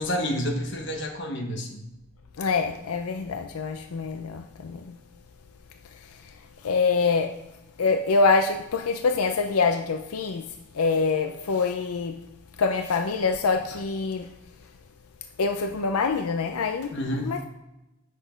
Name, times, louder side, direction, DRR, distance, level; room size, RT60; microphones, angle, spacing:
voice 1, 0.0-1.8 16.9-17.3, equal, 55° left, 1.3 m, -29 dB
voice 2, 2.4-4.9 6.6-7.3 7.8-10.4 10.7-12.2 12.6-14.3 15.4-16.9 17.3-17.5, left 4 dB, 90° left, 0.5 m, -25 dB
8.3 x 6.3 x 5.1 m
head